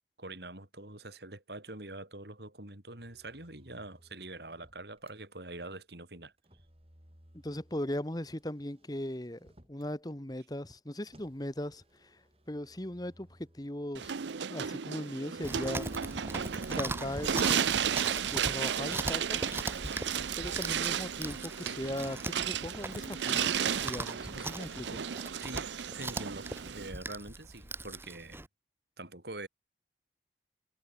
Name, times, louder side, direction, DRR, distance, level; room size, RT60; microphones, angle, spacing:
voice 1, 0.2-6.3 25.4-28.4 29.0-29.5, right 2 dB, 65° right, 4.5 m, -45 dB
Motor vehicle (road), 3.0-5.2 6.4-10.0 11.1-14.4 15.3-17.2, equal, 35° right, 5.2 m, -62 dB
voice 2, 7.4-12.2 12.5-14.1 14.5-15.9 16.7-17.7 18.3-19.4 20.4-23.5 23.8-25.0, left 1 dB, 20° left, 1.4 m, -38 dB
sound 1, 13.9-26.9, right 8 dB, 80° right, 0.6 m, -34 dB
Chewing mastication, 15.4-28.5, right 2 dB, 15° right, 3.5 m, -40 dB
head